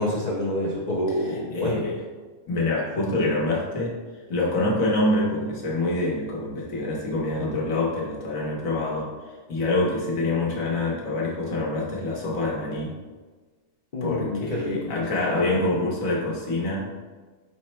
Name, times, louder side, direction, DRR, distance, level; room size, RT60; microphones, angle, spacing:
voice 1, 0.0-1.8 13.9-15.0 15.3-15.5, left 1 dB, 55° left, -3 dB, 0.4 m, -27 dB
voice 2, 1.2-1.9 2.5-3.9 4.3-9.1 9.5-12.9 14.0-16.9, left 2 dB, 85° left, -3 dB, 1.4 m, -26 dB
5.5 x 2.1 x 4.2 m, 1.3 s
omnidirectional pair, 1.4 m